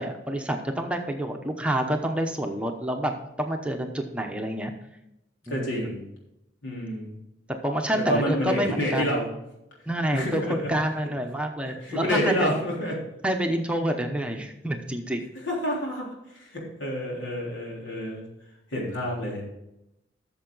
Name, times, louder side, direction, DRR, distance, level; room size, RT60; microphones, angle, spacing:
voice 1, 0.0-3.1 3.4-4.7 5.5-5.8 7.6-9.2 9.9-12.5 13.2-15.3, right 1 dB, 5° right, 3 dB, 0.8 m, -28 dB
voice 2, 5.5-6.0 6.6-7.2 7.9-9.3 10.1-10.7 11.6-12.9 15.4-18.2 18.7-19.4, equal, 90° left, -3 dB, 3.7 m, -28 dB
13.5 x 6.9 x 3.9 m, 0.86 s
head